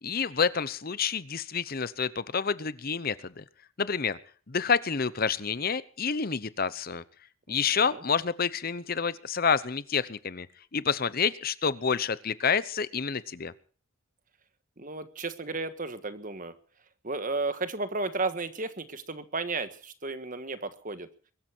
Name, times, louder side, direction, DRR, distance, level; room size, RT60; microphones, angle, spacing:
voice 1, 0.0-3.4 3.8-4.2 4.5-7.0 7.5-10.5 10.7-13.5, left 6 dB, 45° left, 17 dB, 0.8 m, -28 dB
voice 2, 14.8-16.5 17.0-21.1, right 3 dB, 40° right, 11 dB, 1.5 m, -33 dB
22.5 x 13.0 x 4.5 m, 0.43 s
head